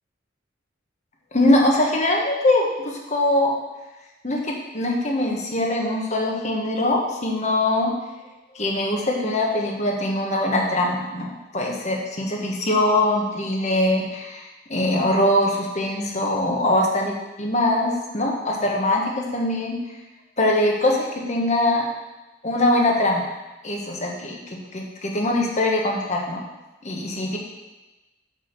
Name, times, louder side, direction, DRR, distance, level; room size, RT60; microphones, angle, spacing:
voice 1, 1.3-3.5 4.2-7.9 8.5-19.8 20.4-21.8 22.4-23.2 23.6-24.4 24.7-26.4 26.8-27.4, left 1 dB, 35° left, 0 dB, 1.3 m, -22 dB
6.1 x 5.0 x 6.7 m, 1.1 s
head